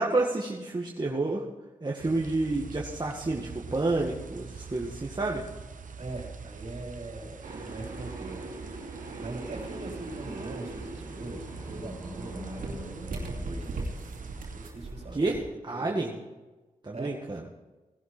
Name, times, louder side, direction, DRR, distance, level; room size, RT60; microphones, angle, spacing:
voice 1, 0.0-1.4 1.8-5.4 15.1-16.2 16.8-17.4, right 2 dB, 30° right, -2 dB, 1.9 m, -29 dB
sound 1, 2.0-14.7, right 5 dB, 70° right, 1.2 m, -44 dB
voice 2, 6.0-8.4 9.2-14.1 14.5-15.4 15.7-16.0 16.9-17.1, right 2 dB, 50° right, 0 dB, 4.0 m, -41 dB
sound 2, 7.4-15.4, right 2 dB, 90° right, 2.6 m, -40 dB
Animal, 10.7-14.7, equal, 15° left, 5.8 m, -45 dB
17.5 x 11.0 x 4.5 m, 1.2 s
cardioid pair, 50°, 14 cm